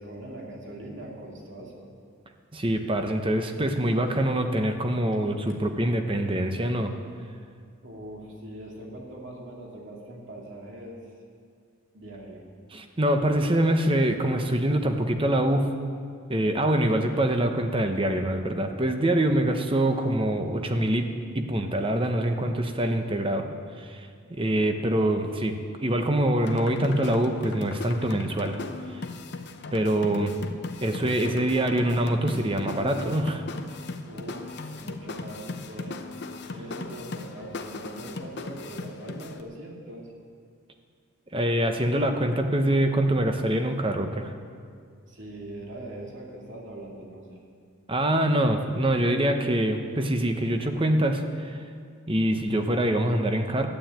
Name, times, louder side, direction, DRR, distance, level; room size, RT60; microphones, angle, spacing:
voice 1, 0.0-1.9 7.8-11.0 11.9-12.4 34.1-36.0 36.5-40.1 45.1-47.4, right 1 dB, 55° right, -1 dB, 2.6 m, -41 dB
voice 2, 2.5-7.0 12.7-15.7 16.3-23.5 23.8-28.6 28.9-29.0 29.7-30.3 30.8-33.4 41.3-44.3 47.9-51.6 52.1-53.7, right 1 dB, 25° right, 6 dB, 0.9 m, -25 dB
sound 1, 26.4-39.4, left 3 dB, 50° left, 0.8 m, -38 dB
12.0 x 9.4 x 9.0 m, 2.2 s
head